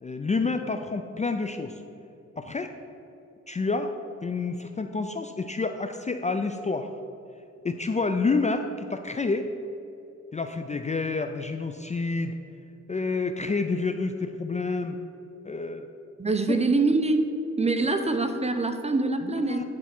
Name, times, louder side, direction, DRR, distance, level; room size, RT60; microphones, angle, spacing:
voice 1, 0.0-1.8 2.4-2.7 3.5-3.9 4.2-6.9 7.6-9.5 10.3-12.3 12.9-15.0 15.5-15.9 16.5-16.6 19.3-19.6, left 3 dB, 25° left, 7 dB, 0.4 m, -28 dB
voice 2, 16.2-17.3 17.6-19.6, right 3 dB, 20° right, 7 dB, 0.7 m, -24 dB
9.6 x 4.5 x 5.9 m, 2.8 s
cardioid pair, 85°, 29 cm